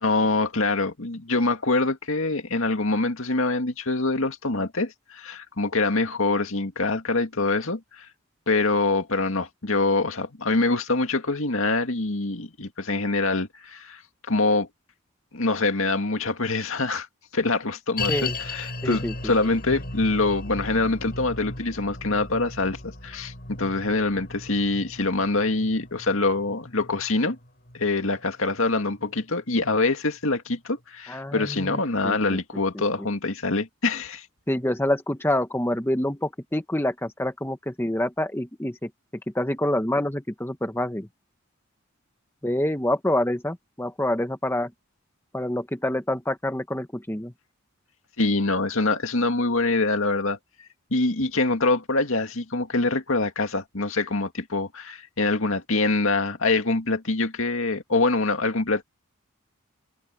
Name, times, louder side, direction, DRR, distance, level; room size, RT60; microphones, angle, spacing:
voice 1, 0.0-8.1 8.5-14.0 14.3-14.7 15.3-17.1 17.3-27.4 27.7-34.2 48.2-50.4 50.9-58.8, left 3 dB, 65° left, 2.2 m, -25 dB
sound 1, 18.0-29.3 29.5-29.6 30.3-30.4, left 3 dB, 45° left, 7.9 m, -36 dB
voice 2, 18.8-19.1 31.1-31.8 32.0-32.2 34.5-38.8 39.3-41.1 42.4-44.7 45.3-47.3, left 1 dB, 10° left, 1.0 m, -26 dB
head